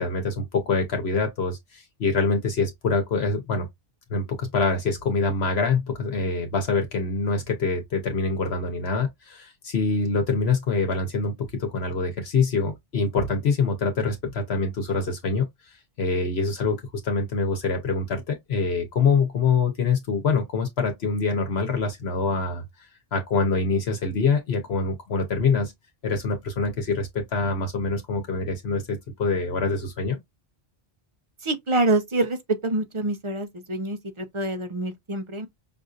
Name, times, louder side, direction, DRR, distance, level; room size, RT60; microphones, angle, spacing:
voice 1, 0.0-3.7 4.1-22.6 23.1-25.7 26.0-30.2, left 4 dB, 75° left, 1.2 m, -25 dB
voice 2, 31.4-35.5, right 2 dB, 35° right, 0.6 m, -26 dB
5.5 x 2.6 x 2.5 m
omnidirectional pair, 1.1 m